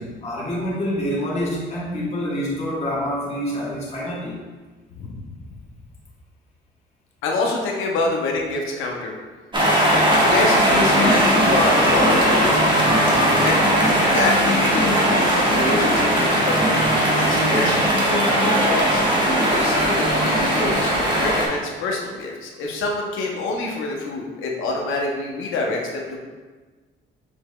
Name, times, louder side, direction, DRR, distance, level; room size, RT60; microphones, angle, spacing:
voice 1, 0.0-4.4, equal, 35° left, -7 dB, 1.4 m, -27 dB
voice 2, 7.2-9.2 10.1-12.7 13.3-13.6 14.1-16.7 17.1-19.0 19.5-26.2, left 2 dB, 90° left, 0 dB, 0.7 m, -26 dB
sound 1, 9.5-21.5, equal, 25° right, 1.2 m, -18 dB
7.1 x 3.3 x 2.2 m, 1.4 s
cardioid pair, 90°, 20 cm